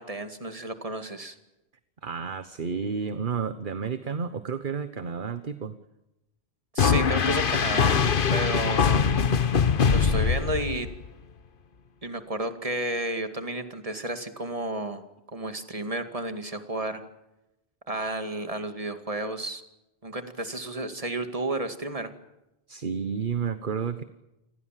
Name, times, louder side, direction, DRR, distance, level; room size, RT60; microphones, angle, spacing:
voice 1, 0.0-1.4 6.7-8.0 8.3-9.0 9.9-10.9 12.0-15.0 15.3-17.0 17.9-19.6 20.0-22.1, right 1 dB, 35° right, 9 dB, 2.3 m, -32 dB
voice 2, 2.0-5.8 22.7-24.0, right 6 dB, 55° right, 11 dB, 1.3 m, -31 dB
sound 1, 6.8-11.1, left 6 dB, 55° left, 1.2 m, -22 dB
29.0 x 21.0 x 7.6 m, 0.93 s
omnidirectional pair, 1.1 m